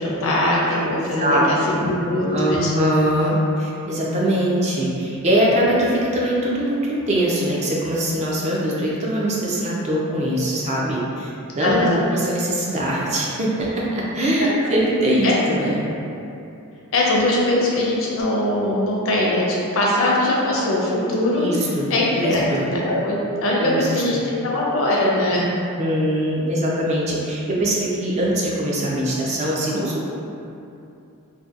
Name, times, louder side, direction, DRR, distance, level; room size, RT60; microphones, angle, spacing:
voice 1, 0.0-2.7 11.6-12.1 14.4-14.7 15.2-15.4 16.9-21.5 21.9-25.5, left 1 dB, 65° left, -4 dB, 0.5 m, -21 dB
voice 2, 2.3-15.9 21.4-22.7 23.6-23.9 24.1-24.2 25.3-25.4 25.8-30.1, right 1 dB, 30° right, -4 dB, 0.4 m, -22 dB
2.7 x 2.1 x 2.3 m, 2.7 s
head